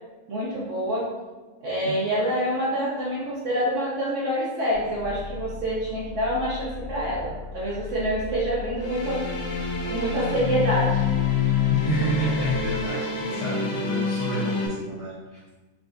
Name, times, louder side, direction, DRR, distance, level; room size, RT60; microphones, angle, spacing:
voice 1, 0.3-1.1 1.6-9.2 9.8-11.1, right 1 dB, 60° right, -7 dB, 1.0 m, -26 dB
sound 1, 4.7-12.9, left 4 dB, 40° left, 0.9 m, -38 dB
sound 2, 8.8-14.7, left 6 dB, 85° left, 1.2 m, -27 dB
voice 2, 11.7-15.4, equal, 65° left, -10 dB, 1.2 m, -28 dB
4.9 x 2.5 x 2.5 m, 1.2 s
omnidirectional pair, 1.7 m